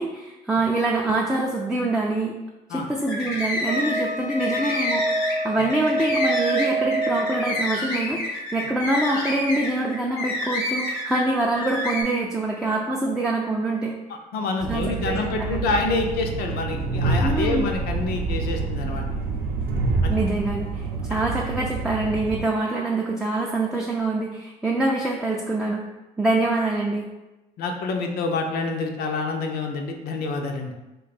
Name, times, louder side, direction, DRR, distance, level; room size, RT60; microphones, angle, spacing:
voice 1, 0.0-2.3 2.7-13.9 14.7-15.6 17.2-17.7 20.1-25.8 26.2-27.1, right 2 dB, 5° right, -2 dB, 0.4 m, -25 dB
sound 1, 3.0-4.0 4.3-11.3 11.6-12.0, left 2 dB, 90° left, 0.9 m, -28 dB
Wind instrument woodwind instrument, 3.7-7.5, right 2 dB, 30° right, 0.8 m, -26 dB
voice 2, 14.3-19.0 20.0-20.2 27.6-30.7, left 3 dB, 70° left, 3 dB, 0.5 m, -27 dB
Train, 14.6-22.4, right 3 dB, 65° right, 0.6 m, -27 dB
2.6 x 2.3 x 4.0 m, 1.0 s
supercardioid pair, 65°, 17 cm